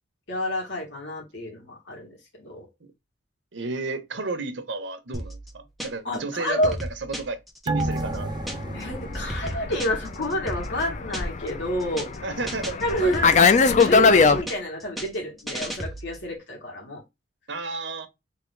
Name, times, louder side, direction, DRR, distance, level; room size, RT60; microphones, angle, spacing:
voice 1, 0.3-2.7 6.0-6.7 8.7-12.1 12.8-13.4 13.7-17.0, equal, 75° left, 2.0 m, -29 dB
voice 2, 3.5-8.4 12.2-13.1 17.5-18.1, right 3 dB, 80° right, 0.9 m, -33 dB
sound 1, 5.1-6.2 6.5-8.8 9.1-11.5 11.8-12.2 12.5-14.2 14.5-16.3, equal, ahead, 1.0 m, -35 dB
sound 2, 7.7-10.6 10.9-11.0, right 2 dB, 25° right, 0.4 m, -32 dB
Fixed-wing aircraft airplane, 7.9-14.4, left 5 dB, 40° left, 0.5 m, -22 dB
3.7 x 3.0 x 3.2 m
head